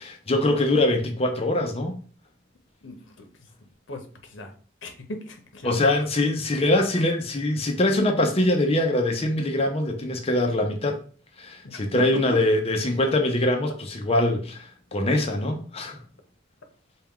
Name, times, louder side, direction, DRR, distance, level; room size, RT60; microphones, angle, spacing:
voice 1, 0.0-2.0 5.6-11.0 11.4-16.0, left 1 dB, 30° left, 0.6 m, -23 dB
voice 2, 2.8-3.5 3.9-4.5 4.8-5.8 11.6-12.4, left 1 dB, 75° left, 0.8 m, -37 dB
4.4 x 2.3 x 3.6 m
head